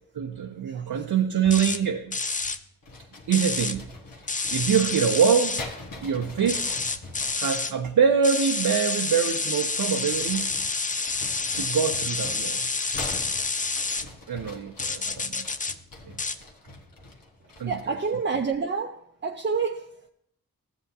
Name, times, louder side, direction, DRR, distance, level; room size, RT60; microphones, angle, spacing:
voice 1, 0.1-2.2 3.3-3.9 4.5-5.6 6.0-6.7 7.4-10.5 11.5-12.7 14.3-15.5 16.0-16.3 17.6-17.8, right 7 dB, 75° right, 0.7 m, -24 dB
sound 1, 1.5-1.8 2.1-2.6 3.3-3.8 4.3-5.6 6.5-7.7 8.2-14.1 14.8-15.8 16.2-16.4, left 4 dB, 20° left, 0.5 m, -28 dB
sound 2, 2.8-7.7 9.4-18.0, left 2 dB, 70° left, 1.3 m, -43 dB
voice 2, 17.7-19.9, right 5 dB, 30° right, 0.6 m, -28 dB
13.5 x 7.7 x 2.7 m
cardioid pair, 45°, 35 cm